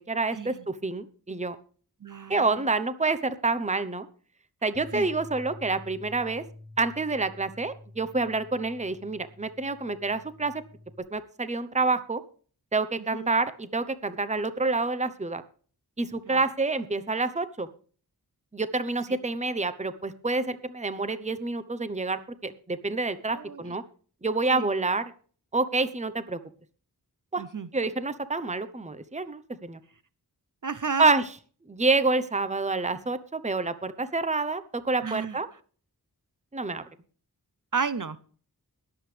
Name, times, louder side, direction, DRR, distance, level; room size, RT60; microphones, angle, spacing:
voice 1, 0.0-1.6 2.3-4.1 4.6-6.4 6.8-10.5 11.1-12.2 12.7-15.4 16.0-17.7 18.5-23.8 24.2-25.0 25.5-26.4 27.3-27.4 27.7-29.8 31.0-31.2 31.7-35.5 36.5-36.8, right 3 dB, 20° right, 12 dB, 0.9 m, -28 dB
voice 2, 2.0-2.6 4.9-5.1 13.1-13.4 16.3-16.4 19.1-19.2 23.3-23.7 24.5-24.7 27.4-27.7 30.6-31.1 35.0-35.4 37.7-38.2, right 5 dB, 55° right, 15 dB, 0.8 m, -33 dB
Bass guitar, 4.7-11.0, left 2 dB, 90° right, 3.7 m, -48 dB
21.0 x 8.0 x 3.3 m, 0.42 s
wide cardioid pair, 60°, 38 cm